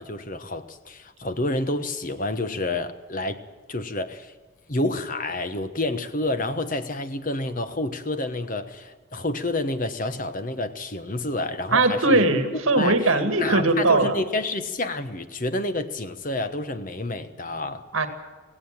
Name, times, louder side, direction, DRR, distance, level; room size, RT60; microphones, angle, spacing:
voice 1, 0.0-3.4 3.7-4.3 4.7-12.2 12.7-13.1 13.4-17.8, left 2 dB, 40° left, 10 dB, 1.2 m, -29 dB
voice 2, 11.7-14.2 17.9-18.1, right 2 dB, 80° right, 8 dB, 2.1 m, -20 dB
17.5 x 16.5 x 9.0 m, 1.3 s
head